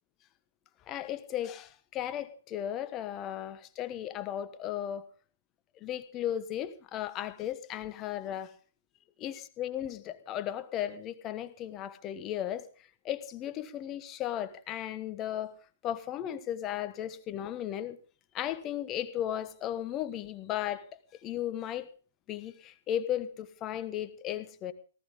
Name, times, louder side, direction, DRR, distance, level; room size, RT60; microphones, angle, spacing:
voice 1, 0.9-5.1 5.8-8.5 9.2-12.7 13.0-15.5 15.8-18.0 18.3-20.8 21.2-21.9 22.3-24.7, left 11 dB, 25° left, 12 dB, 1.4 m, -35 dB
18.5 x 15.0 x 3.8 m, 0.40 s
figure-of-eight pair, 120°, 0 cm